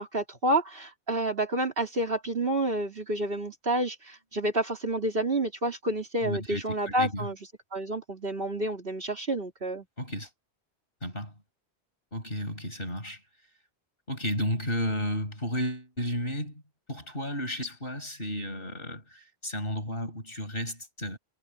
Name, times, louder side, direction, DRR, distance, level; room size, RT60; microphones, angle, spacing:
voice 1, 0.0-7.4 7.7-9.9, right 1 dB, 60° right, 3.7 m, -29 dB
voice 2, 6.2-7.3 10.0-10.3 11.0-11.3 12.1-13.2 14.1-16.6 16.9-21.2, equal, 60° left, 7.6 m, -33 dB
omnidirectional pair, 1.1 m